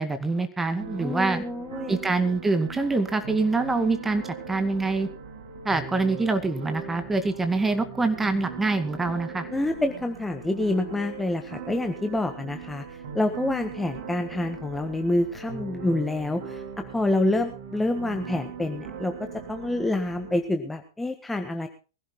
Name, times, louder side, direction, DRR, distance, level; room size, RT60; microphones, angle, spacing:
voice 1, 0.0-1.4 1.9-5.1 5.6-9.5, right 3 dB, 10° right, 9 dB, 2.2 m, -25 dB
sound 1, 0.8-20.4, right 6 dB, 60° right, 6.0 m, -40 dB
voice 2, 1.0-2.0 9.5-21.7, left 2 dB, 5° left, 6 dB, 1.5 m, -27 dB
23.5 x 16.0 x 2.2 m, 0.34 s
figure-of-eight pair, 100°, 2 cm